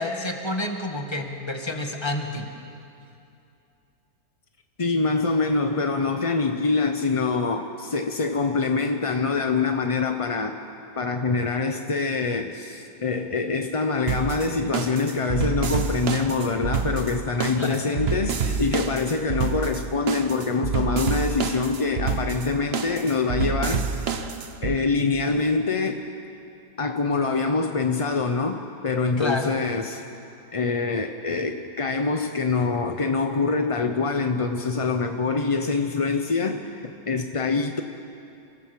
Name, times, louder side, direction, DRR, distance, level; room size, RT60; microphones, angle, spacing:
voice 1, 0.0-2.5 17.6-17.8 29.2-29.6, left 2 dB, 15° left, 3 dB, 1.6 m, -29 dB
voice 2, 4.8-10.6 11.0-23.9 24.6-26.0 26.8-30.1 30.5-37.8, left 4 dB, 35° left, 5 dB, 0.5 m, -25 dB
sound 1, 14.1-24.8, right 6 dB, 45° right, 1.0 m, -28 dB
27.5 x 16.0 x 7.6 m, 2.6 s
omnidirectional pair, 1.7 m